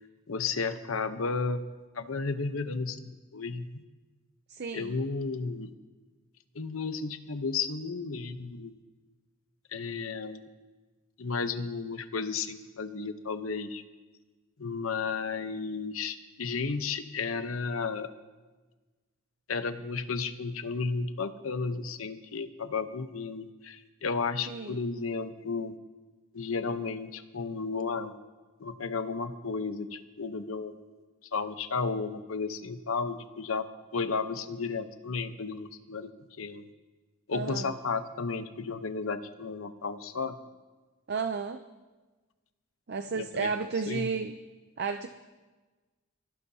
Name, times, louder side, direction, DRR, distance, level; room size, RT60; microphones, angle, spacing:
voice 1, 0.3-1.6 1.9-3.8 4.7-5.7 6.5-8.8 9.7-10.5 11.2-13.8 14.6-18.1 19.5-25.7 26.3-28.1 28.6-30.7 31.3-33.6 33.9-36.1 36.4-36.7 37.3-40.4 43.1-43.5 43.9-44.1, left 4 dB, 90° left, 10 dB, 0.9 m, -33 dB
voice 2, 4.5-5.0 24.5-24.8 37.3-37.7 41.1-41.6 42.9-44.4 44.8-45.1, right 5 dB, 50° right, 8 dB, 0.5 m, -32 dB
25.0 x 16.0 x 2.8 m, 1.3 s
head